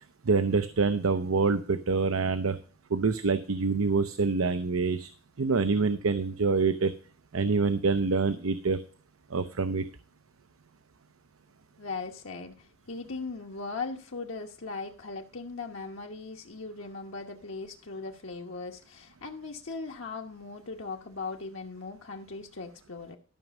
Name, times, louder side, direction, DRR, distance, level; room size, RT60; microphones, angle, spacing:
voice 1, 0.2-2.6 2.9-5.1 5.4-6.9 7.3-8.8 9.3-9.8, right 4 dB, 85° right, 10 dB, 0.7 m, -26 dB
voice 2, 11.8-23.2, left 4 dB, 70° left, 1 dB, 1.2 m, -39 dB
13.0 x 6.1 x 5.4 m, 0.38 s
head